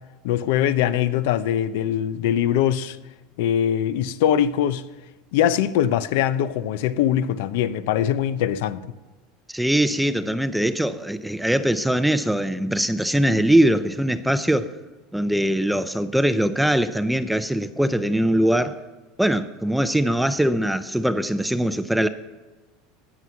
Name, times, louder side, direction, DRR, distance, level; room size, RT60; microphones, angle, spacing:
voice 1, 0.2-3.0 3.4-4.8 5.3-8.8, left 10 dB, 70° left, 0.7 m, -22 dB
voice 2, 9.5-14.7 15.1-18.8 19.2-22.1, right 1 dB, ahead, 0.5 m, -21 dB
15.5 x 9.6 x 5.8 m
supercardioid pair, 150°, 0 cm